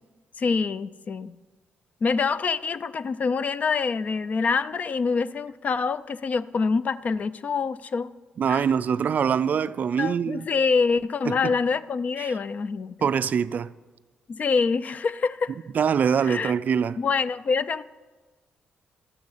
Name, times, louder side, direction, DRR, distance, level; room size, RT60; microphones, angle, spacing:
voice 1, 0.4-1.4 2.0-8.1 8.5-8.6 10.0-13.1 14.3-15.6 16.2-16.5 17.0-17.8, left 5 dB, 45° left, 0.4 m, -26 dB
voice 2, 8.4-10.5 11.3-11.5 12.2-12.3 13.0-13.7 15.7-17.0, right 7 dB, 50° right, 0.3 m, -24 dB
12.5 x 6.5 x 7.3 m
cardioid pair, 95°, 4 cm